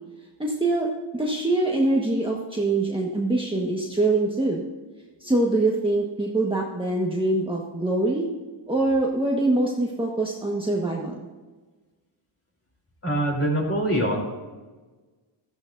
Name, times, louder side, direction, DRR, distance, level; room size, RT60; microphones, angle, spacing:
voice 1, 0.4-4.6 5.2-8.3 8.7-11.3, right 2 dB, 10° right, -3 dB, 1.4 m, -24 dB
voice 2, 13.0-14.2, right 1 dB, 30° left, -2 dB, 3.7 m, -23 dB
14.0 x 13.5 x 2.7 m, 1.3 s
cardioid pair, 100°, 49 cm